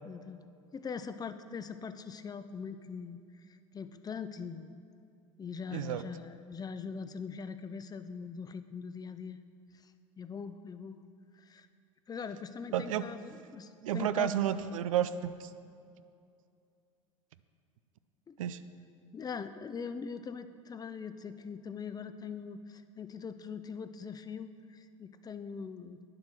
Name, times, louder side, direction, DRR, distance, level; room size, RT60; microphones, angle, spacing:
voice 1, 0.0-0.4 0.7-4.7 5.4-9.4 9.7-9.9 10.2-11.0 11.3-11.7 12.1-14.3 18.3-18.4 19.1-26.1, left 6 dB, 25° left, 11 dB, 0.5 m, -42 dB
voice 2, 5.7-6.0 12.7-13.0 13.8-15.5 18.4-18.6, right 10 dB, 80° right, 12 dB, 0.5 m, -31 dB
9.7 x 7.6 x 6.2 m, 2.5 s
hypercardioid pair, 85°, 17 cm